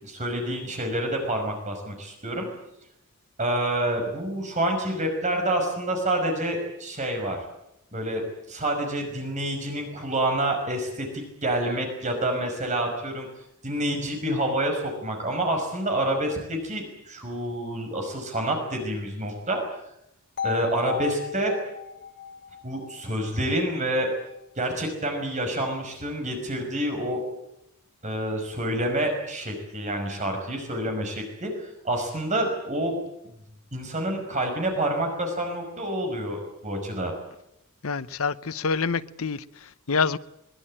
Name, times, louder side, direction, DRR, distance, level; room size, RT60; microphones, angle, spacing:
voice 1, 0.0-2.5 3.4-7.4 7.9-8.2 8.5-13.3 13.6-19.6 20.4-21.5 22.6-24.1 24.6-27.2 28.0-32.9 33.7-37.1, right 1 dB, 35° right, 5.5 m, -28 dB
sound 1, 20.4-24.4, left 7 dB, 50° left, 3.1 m, -36 dB
voice 2, 37.8-40.2, left 5 dB, 70° left, 0.8 m, -27 dB
22.5 x 21.0 x 8.9 m
head